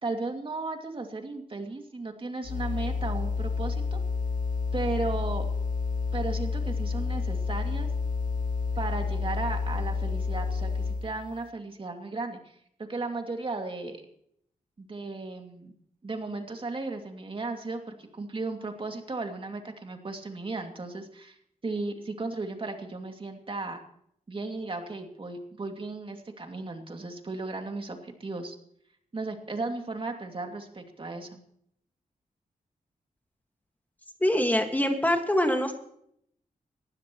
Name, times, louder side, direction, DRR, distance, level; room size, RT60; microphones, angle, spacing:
voice 1, 0.0-4.0 4.7-5.5 6.1-7.9 8.7-12.4 12.9-14.0 14.8-15.7 16.0-21.4 21.6-23.8 24.3-28.6 29.1-31.4, right 3 dB, 35° right, 4 dB, 2.5 m, -35 dB
sound 1, 2.4-11.1, left 4 dB, 65° left, 1.8 m, -29 dB
voice 2, 34.2-35.7, left 1 dB, 10° left, 4 dB, 1.9 m, -24 dB
21.0 x 15.5 x 3.1 m, 0.69 s
wide cardioid pair, 100°, 15 cm